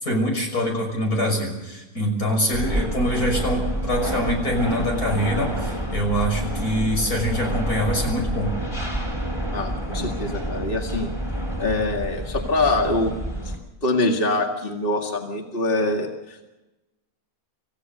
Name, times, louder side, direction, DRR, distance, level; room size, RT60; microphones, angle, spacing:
voice 1, 0.0-8.5, equal, 85° left, 1 dB, 6.5 m, -24 dB
sound 1, 2.5-13.6, right 1 dB, 20° left, 4.4 m, -28 dB
voice 2, 9.5-11.1 11.6-13.2 13.8-16.5, left 2 dB, 40° left, 2 dB, 2.3 m, -24 dB
27.5 x 16.0 x 6.7 m, 1.0 s
omnidirectional pair, 1.5 m